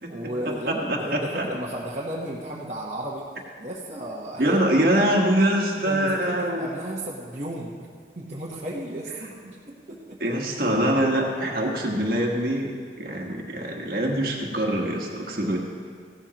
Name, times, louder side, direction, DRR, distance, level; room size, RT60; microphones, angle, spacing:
voice 1, 0.1-3.3 3.6-4.6 5.0-5.1 5.8-7.8 8.2-9.6 9.9-10.2, right 1 dB, 40° right, -6 dB, 1.0 m, -34 dB
voice 2, 0.7-1.5 4.4-6.7 10.2-15.6, right 1 dB, 55° right, 0 dB, 1.4 m, -24 dB
15.5 x 12.5 x 3.0 m, 2.1 s
head